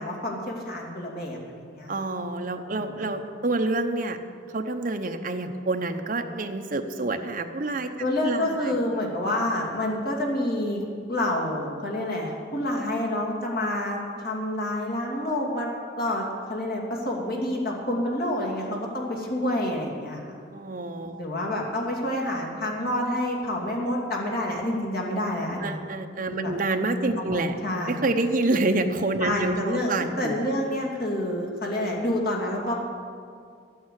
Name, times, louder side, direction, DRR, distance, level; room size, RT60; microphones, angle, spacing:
voice 1, 0.0-1.9 2.8-2.9 8.0-15.7 16.0-20.2 21.1-25.8 26.3-26.5 27.2-28.0 29.2-32.7, left 1 dB, 50° left, -2 dB, 2.6 m, -28 dB
voice 2, 1.9-4.2 4.5-7.9 8.2-8.8 20.5-21.3 25.6-27.5 27.9-30.5, right 2 dB, 45° right, 5 dB, 0.9 m, -27 dB
11.5 x 9.3 x 8.4 m, 2.2 s
head